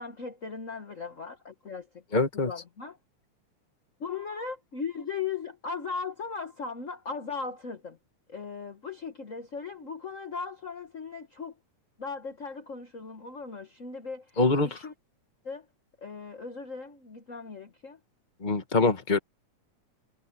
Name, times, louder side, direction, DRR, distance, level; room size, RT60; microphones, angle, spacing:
voice 1, 0.0-2.0 2.3-3.0 4.0-8.0 8.3-11.5 12.0-14.3 14.6-14.9 15.4-15.6 16.0-18.0, left 5 dB, 50° left, 0.9 m, -38 dB
voice 2, 2.1-2.5 14.4-14.8 18.4-19.2, left 3 dB, 20° left, 1.2 m, -24 dB
omnidirectional pair, 3.6 m